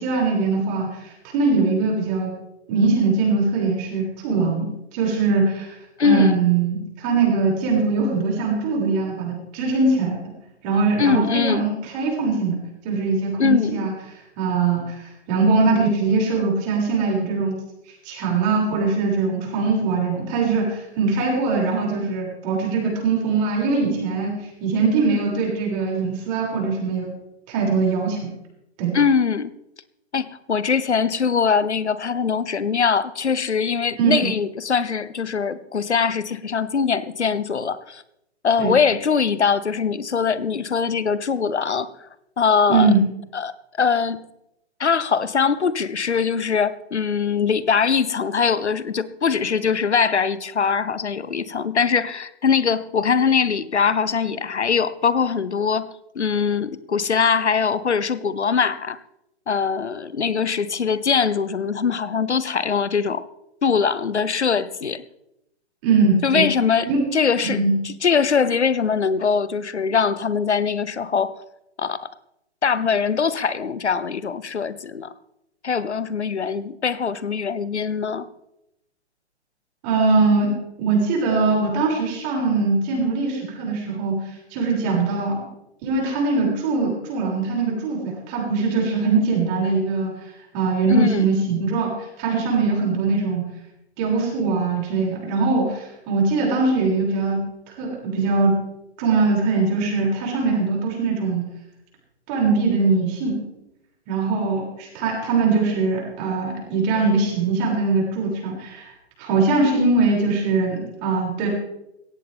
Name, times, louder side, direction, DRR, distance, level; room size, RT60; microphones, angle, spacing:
voice 1, 0.0-2.3 2.7-4.6 4.9-5.7 6.0-10.2 10.6-12.6 12.8-13.9 14.4-17.5 18.0-27.1 27.5-28.3 28.8-28.9 34.0-34.3 38.6-38.8 42.7-43.1 65.8-66.4 66.9-67.0 67.4-67.8 79.8-85.4 85.8-90.1 90.5-91.9 92.2-93.4 94.0-97.4 97.8-98.6 99.0-101.4 102.3-103.4 104.1-108.9 109.2-111.5, right 4 dB, 40° right, 6.8 m, -21 dB
voice 2, 6.0-6.4 11.0-11.7 13.4-13.9 28.9-29.5 30.1-38.0 38.4-41.9 42.4-42.9 43.3-43.5 43.8-44.2 44.8-59.0 59.5-63.3 63.6-65.0 66.2-71.4 71.8-72.0 72.6-75.1 75.6-78.3 90.9-91.2, left 6 dB, 85° left, 1.0 m, -22 dB
17.0 x 14.0 x 3.6 m
figure-of-eight pair, 120°, 33 cm